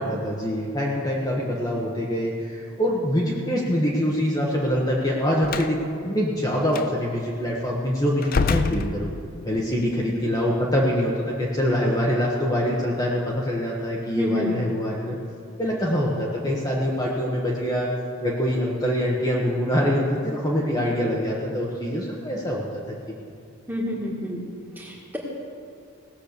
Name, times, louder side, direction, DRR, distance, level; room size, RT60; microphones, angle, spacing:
voice 1, 0.0-5.8 6.0-9.1 9.4-15.2 15.6-17.9 18.2-23.1, equal, 15° left, -4 dB, 1.2 m, -24 dB
Slam, 5.4-5.8 6.7-6.9 8.2-9.5, left 4 dB, 40° left, 0.4 m, -26 dB
voice 2, 14.2-14.6 23.7-24.4 24.8-25.2, left 1 dB, 10° right, -2 dB, 1.8 m, -28 dB
17.5 x 7.5 x 6.7 m, 2.4 s
head